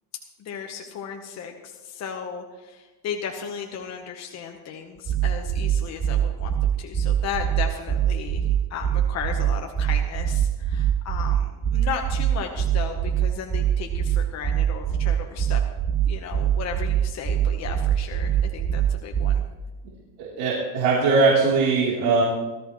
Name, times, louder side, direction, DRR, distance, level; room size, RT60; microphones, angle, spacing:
voice 1, 0.4-15.6 16.0-19.4, left 7 dB, 40° left, 3 dB, 1.2 m, -35 dB
sound 1, 5.1-19.5, right 10 dB, 25° right, 0.7 m, -23 dB
voice 2, 20.2-22.2, right 4 dB, 70° right, -6 dB, 3.6 m, -20 dB
18.5 x 13.5 x 3.2 m, 1.2 s
cardioid pair, 140°, 41 cm